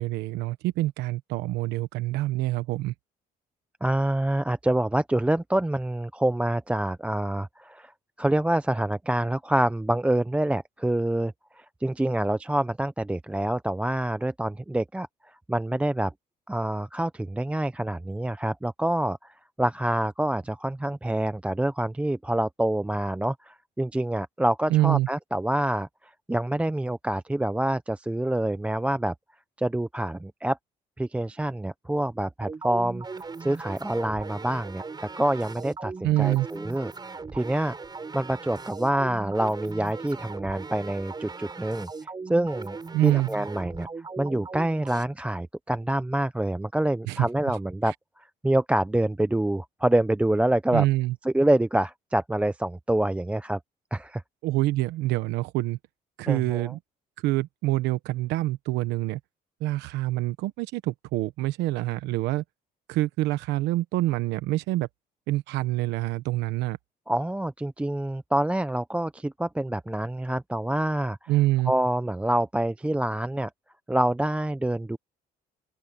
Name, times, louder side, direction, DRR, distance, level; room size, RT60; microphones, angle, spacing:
voice 1, 0.0-2.9 24.7-25.1 36.0-36.5 42.9-43.3 47.1-47.3 47.9-48.0 50.7-51.1 54.4-55.8 56.2-56.8 57.2-59.2 59.6-62.4 62.9-64.9 65.3-66.8 71.3-71.7, right 17 dB, 90° right, 1.1 m, -26 dB
voice 2, 3.8-7.9 8.2-16.1 16.5-29.1 29.6-30.6 31.0-33.1 33.4-35.9 36.2-37.7 38.1-42.8 43.0-43.9 44.2-50.9 51.2-53.6 53.9-54.2 56.3-56.7 67.1-71.2 71.7-73.5 73.9-75.0, right 1 dB, 5° right, 0.6 m, -26 dB
sound 1, 32.4-45.0, right 4 dB, 25° right, 6.4 m, -39 dB
open air
cardioid pair, 110°, 17 cm